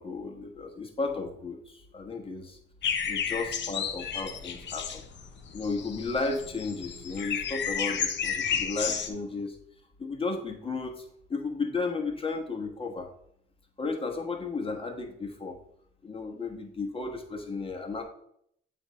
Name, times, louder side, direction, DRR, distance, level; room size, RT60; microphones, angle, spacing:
voice 1, 0.0-2.6 3.1-5.0 5.5-9.6 10.0-11.0 11.3-13.1 13.8-15.6 16.0-18.0, left 3 dB, 25° left, 4 dB, 1.3 m, -34 dB
sound 1, 2.8-9.1, left 7 dB, 65° left, 0.8 m, -32 dB
7.9 x 2.8 x 5.2 m, 0.68 s
cardioid pair, 90°, 20 cm